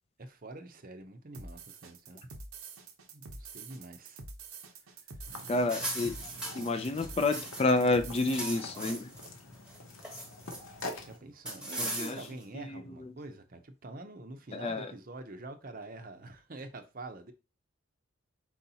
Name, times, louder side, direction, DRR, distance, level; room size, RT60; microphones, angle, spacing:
voice 1, 0.2-2.2 3.1-4.2 11.1-17.3, right 2 dB, 40° right, 0.6 m, -46 dB
sound 1, 1.3-8.8, right 4 dB, 80° right, 0.8 m, -47 dB
sound 2, 5.3-11.2, left 2 dB, 80° left, 0.9 m, -46 dB
voice 2, 5.5-6.2 6.5-9.1 11.8-12.2 12.5-13.1 14.5-14.9, left 2 dB, 30° left, 0.3 m, -29 dB
sound 3, 5.6-7.8 8.1-9.3 9.7-10.8 11.4-12.4, right 1 dB, 5° right, 1.0 m, -39 dB
4.5 x 4.1 x 2.8 m
head